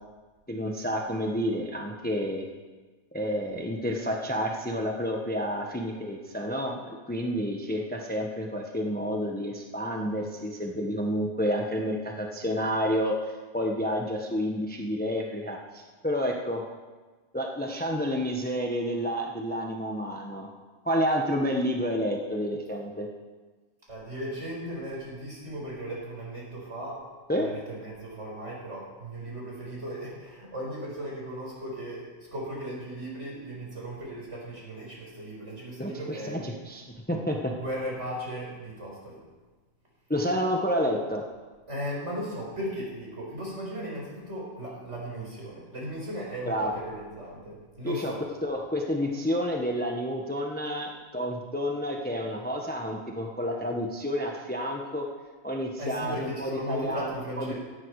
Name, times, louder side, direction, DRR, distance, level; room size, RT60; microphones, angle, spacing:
voice 1, 0.5-2.5 3.1-16.6 17.3-20.5 20.8-23.1 27.3-27.5 35.8-37.5 40.1-41.2 46.5-46.7 47.8-48.1 48.4-55.0 55.4-57.5, equal, 5° left, 1 dB, 1.2 m, -30 dB
voice 2, 23.9-27.1 27.4-36.4 37.6-39.2 41.7-48.2 55.8-57.5, right 1 dB, 50° right, -4 dB, 5.6 m, -37 dB
17.0 x 14.0 x 4.9 m, 1.3 s
omnidirectional pair, 1.5 m